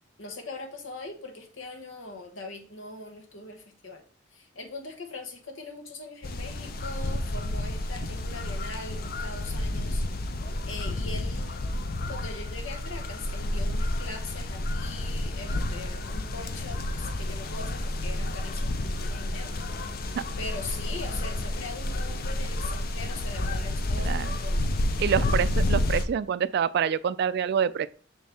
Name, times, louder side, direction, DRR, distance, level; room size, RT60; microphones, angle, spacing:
voice 1, 0.2-4.0 4.3-10.2 10.7-19.5 20.4-24.6, left 3 dB, 85° left, 1.2 m, -41 dB
sound 1, 6.2-26.0, left 1 dB, 50° left, 0.6 m, -30 dB
voice 2, 24.0-24.3 25.0-27.9, right 8 dB, 55° right, 0.3 m, -26 dB
6.4 x 4.3 x 3.4 m
head